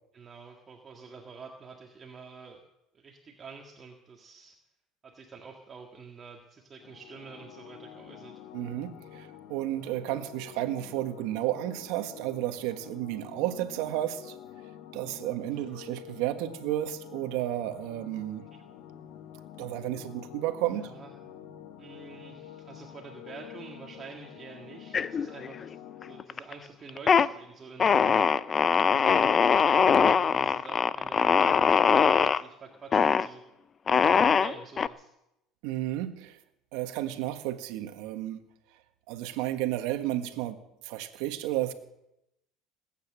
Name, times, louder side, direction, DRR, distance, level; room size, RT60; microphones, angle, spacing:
voice 1, 0.1-2.6 2.9-4.6 5.0-8.4 15.5-15.8 18.5-18.6 20.7-21.1 21.8-25.7 26.0-33.4 33.9-35.1, right 5 dB, 30° right, 1 dB, 1.9 m, -48 dB
sound 1, 6.8-26.2, left 10 dB, 70° left, 1.7 m, -48 dB
voice 2, 8.5-14.4 14.9-18.4 19.6-20.9 35.6-36.4 36.7-38.4 39.1-40.6 40.8-41.7, right 14 dB, 80° right, 8 dB, 1.6 m, -32 dB
sound 2, 24.9-25.7 26.0-26.5 26.9-27.3 27.8-32.4 32.9-33.3 33.9-34.9, left 6 dB, 30° left, 0.5 m, -22 dB
20.0 x 9.2 x 7.6 m, 0.85 s
supercardioid pair, 115°, 0 cm